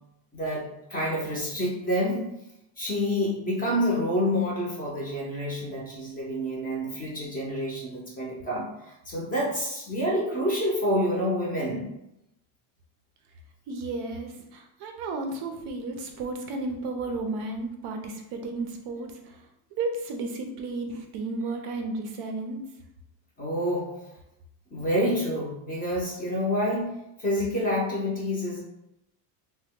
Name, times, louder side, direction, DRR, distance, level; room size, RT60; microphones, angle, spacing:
voice 1, 0.3-2.2 2.8-11.9 23.4-23.9 24.7-26.9 27.2-28.6, equal, 20° left, -3 dB, 0.5 m, -28 dB
voice 2, 13.7-19.4 19.7-22.7, right 3 dB, 55° right, 3 dB, 0.5 m, -33 dB
2.8 x 2.1 x 3.5 m, 0.86 s
cardioid pair, 150°, 49 cm